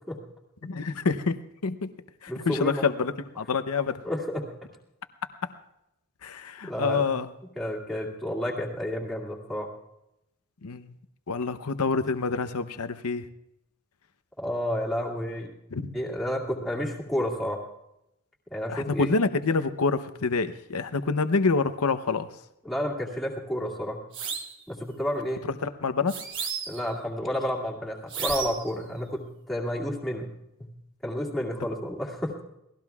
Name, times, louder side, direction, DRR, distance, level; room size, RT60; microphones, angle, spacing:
voice 1, 0.6-1.4 1.6-1.9 2.2-4.0 6.2-7.3 10.6-10.9 11.3-13.3 15.7-16.0 18.7-22.3 25.5-26.1, left 4 dB, 80° left, 10 dB, 0.8 m, -27 dB
voice 2, 2.3-2.8 4.0-4.5 6.7-7.1 7.6-9.7 14.4-15.5 15.9-17.6 18.5-19.1 22.6-24.0 24.7-25.5 26.7-30.3 30.6-30.7 31.0-32.3, equal, ahead, -4 dB, 2.2 m, -30 dB
sound 1, 24.1-24.6 26.1-26.9 28.1-28.7, right 6 dB, 55° right, 1.2 m, -33 dB
28.0 x 18.5 x 2.4 m, 0.85 s
head